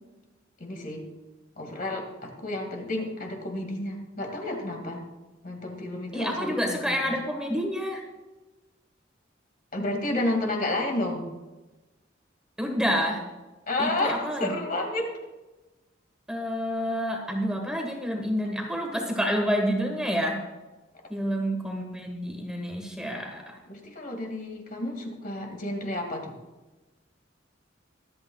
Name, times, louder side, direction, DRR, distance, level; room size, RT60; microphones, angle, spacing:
voice 1, 0.6-1.0 1.6-5.1 5.4-7.2 9.7-11.3 13.7-15.1 23.7-26.3, left 1 dB, 45° left, 2 dB, 2.2 m, -31 dB
voice 2, 6.1-8.0 12.6-13.2 13.8-14.5 16.3-20.4 21.1-23.6, equal, 5° right, 1 dB, 1.4 m, -28 dB
24.0 x 8.9 x 2.4 m, 1.1 s
head